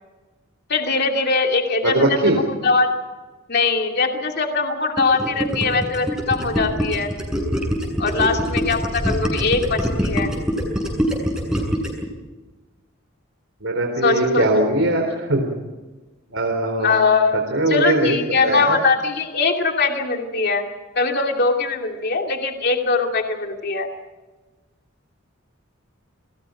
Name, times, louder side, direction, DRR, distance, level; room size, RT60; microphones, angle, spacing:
voice 1, 0.7-2.9 3.5-7.1 8.0-10.3 14.0-14.7 16.8-17.4 17.7-20.6 20.9-23.9, left 4 dB, 50° left, 3 dB, 2.8 m, -21 dB
voice 2, 1.8-2.4 13.6-15.5 16.3-16.9 17.5-18.2 18.4-18.8, right 2 dB, 70° right, 2 dB, 3.9 m, -20 dB
Gurgling, 5.0-12.1, equal, 5° right, 7.6 m, -23 dB
29.5 x 22.0 x 5.1 m, 1.2 s
head